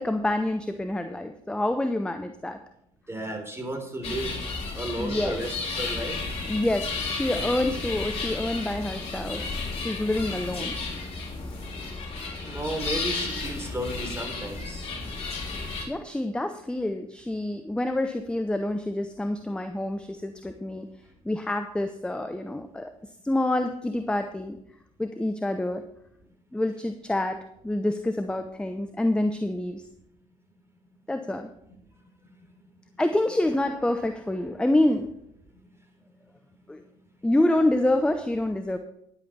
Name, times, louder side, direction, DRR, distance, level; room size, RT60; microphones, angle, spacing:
voice 1, 0.0-2.6 5.0-5.4 6.4-9.4 9.7-10.8 11.4-11.5 15.9-20.9 21.2-22.9 23.2-24.6 25.0-25.8 26.5-29.8 31.1-31.5 33.0-35.1 36.7-36.8 37.2-38.8, left 1 dB, 5° left, 8 dB, 0.9 m, -27 dB
voice 2, 3.1-4.4 4.8-6.1 12.3-15.2, right 1 dB, 15° right, 2 dB, 3.6 m, -33 dB
sound 1, 4.0-15.8, left 3 dB, 35° left, 3.6 m, -33 dB
10.5 x 8.2 x 5.7 m, 0.75 s
figure-of-eight pair, 50°, 18 cm